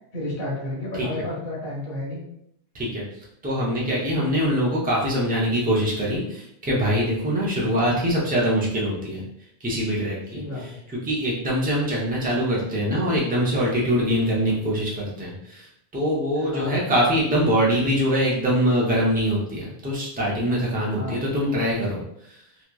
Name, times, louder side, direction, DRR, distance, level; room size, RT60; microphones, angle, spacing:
voice 1, 0.1-2.2 10.3-10.8 16.4-16.8 20.9-21.2, left 1 dB, 55° left, -5 dB, 0.9 m, -31 dB
voice 2, 3.4-9.2 9.6-10.4 10.9-15.7 15.9-22.0 22.3-22.4, equal, 10° right, -5 dB, 0.4 m, -23 dB
2.9 x 2.3 x 2.2 m, 0.76 s
omnidirectional pair, 1.2 m